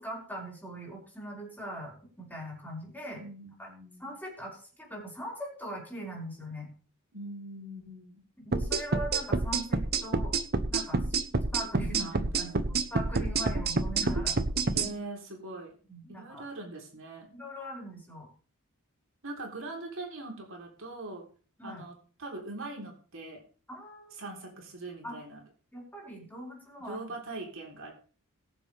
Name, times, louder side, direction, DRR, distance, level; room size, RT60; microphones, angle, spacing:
voice 1, 0.0-3.3 3.6-3.7 4.0-6.7 8.4-10.4 10.7-11.0 11.5-14.4 14.8-14.9 15.9-16.4 17.3-18.3 21.6-21.8 23.7-24.2 25.0-25.2 25.7-27.0, right 1 dB, 10° left, -3 dB, 5.3 m, -41 dB
voice 2, 3.2-4.1 7.1-8.2 11.9-12.7 14.7-15.7 16.1-17.3 19.2-21.3 21.6-23.4 24.1-25.4 26.9-27.9, right 2 dB, 65° right, 0 dB, 3.6 m, -42 dB
sound 1, 8.5-14.9, right 3 dB, 50° right, 1.0 m, -28 dB
21.5 x 7.3 x 3.5 m, 0.39 s
head